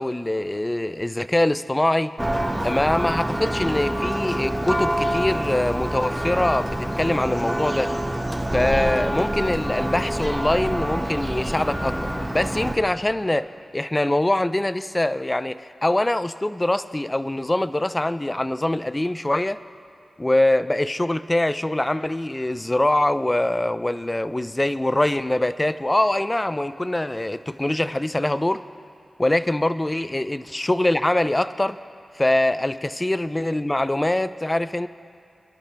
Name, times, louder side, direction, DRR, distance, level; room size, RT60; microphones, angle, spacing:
voice 1, 0.0-2.1 2.6-7.9 8.5-12.0 12.3-19.6 20.2-28.6 29.2-31.8 32.2-34.9, left 1 dB, 25° left, 14 dB, 0.5 m, -23 dB
Church bell, 2.2-12.8, right 1 dB, 15° right, 1.5 m, -26 dB
28.0 x 11.0 x 3.4 m, 2.5 s
cardioid pair, 45°, 0 cm